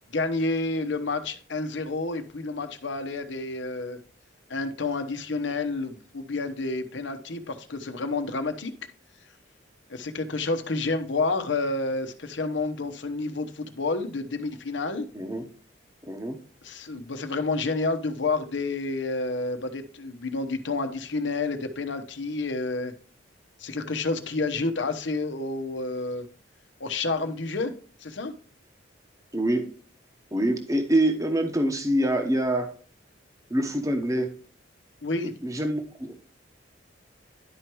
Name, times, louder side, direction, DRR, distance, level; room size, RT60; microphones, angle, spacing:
voice 1, 0.1-4.0 4.5-8.7 9.9-15.1 16.6-22.9 23.6-26.3 26.8-27.7 28.0-28.3 35.0-35.3, left 3 dB, 80° left, 8 dB, 1.0 m, -29 dB
voice 2, 15.1-15.4 16.1-16.4 29.3-29.7 30.3-32.7 33.5-34.3 35.4-36.1, right 1 dB, 15° right, 5 dB, 1.0 m, -25 dB
11.5 x 4.7 x 3.1 m, 0.44 s
head